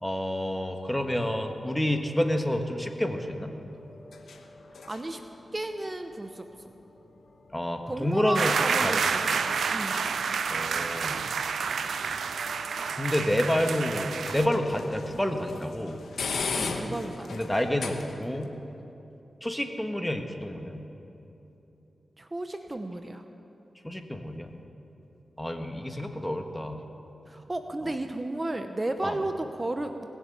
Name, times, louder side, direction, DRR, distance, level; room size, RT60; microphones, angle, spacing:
voice 1, 0.0-3.5 7.5-8.5 8.8-9.1 10.5-11.2 13.0-16.0 17.3-18.5 19.4-20.8 23.8-24.6 25.4-26.8 29.0-29.2, left 1 dB, 10° left, 5 dB, 1.5 m, -29 dB
sound 1, 1.0-18.5, left 4 dB, 85° left, 1.1 m, -41 dB
voice 2, 4.9-5.2 5.5-6.7 7.9-9.4 9.7-10.0 16.5-17.4 22.2-23.2 27.3-30.1, right 2 dB, 30° right, 7 dB, 0.9 m, -33 dB
sound 2, 8.3-14.5, right 6 dB, 85° right, 0.5 m, -29 dB
19.5 x 7.5 x 8.6 m, 3.0 s
cardioid pair, 50°, 0 cm